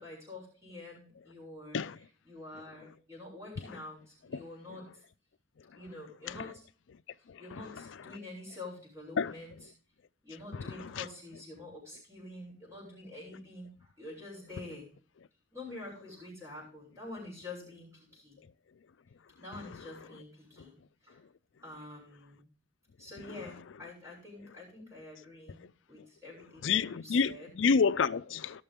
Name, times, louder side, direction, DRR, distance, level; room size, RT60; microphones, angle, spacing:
voice 1, 0.0-5.0 5.7-6.6 7.4-9.7 10.2-14.9 15.5-18.4 19.4-20.7 21.0-21.2 21.6-22.4 23.0-25.6 25.9-27.5, left 2 dB, 15° right, 7.0 m, -47 dB
voice 2, 26.6-28.6, left 5 dB, 75° left, 0.4 m, -28 dB
19.0 x 6.6 x 3.6 m
head